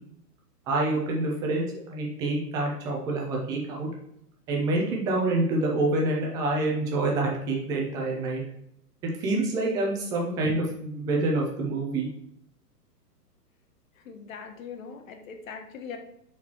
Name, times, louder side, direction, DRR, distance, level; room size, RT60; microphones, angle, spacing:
voice 1, 0.7-3.9 4.5-8.4 9.2-12.1, right 2 dB, 10° right, -1 dB, 0.4 m, -27 dB
voice 2, 14.0-16.0, left 6 dB, 55° left, 4 dB, 1.5 m, -41 dB
10.0 x 4.3 x 3.0 m, 0.75 s
figure-of-eight pair, 115°, 48 cm